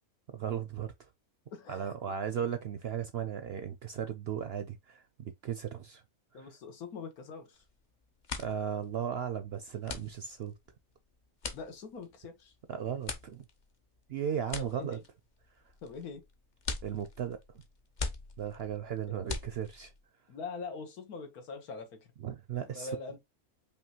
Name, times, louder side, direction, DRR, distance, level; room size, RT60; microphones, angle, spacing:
voice 1, 0.3-0.9 1.7-6.0 6.3-6.5 8.4-10.5 12.7-13.4 14.1-15.0 16.8-17.4 18.4-19.9 22.2-22.9, right 8 dB, 65° right, 0.6 m, -36 dB
voice 2, 1.5-1.9 6.3-7.6 11.5-12.5 14.6-15.0 15.8-16.3 19.1-19.2 20.3-22.1 22.7-23.2, left 4 dB, 90° left, 1.6 m, -43 dB
sound 1, 7.6-7.8 8.1-20.0, left 4 dB, 45° left, 0.7 m, -42 dB
5.2 x 2.7 x 2.8 m
omnidirectional pair, 1.5 m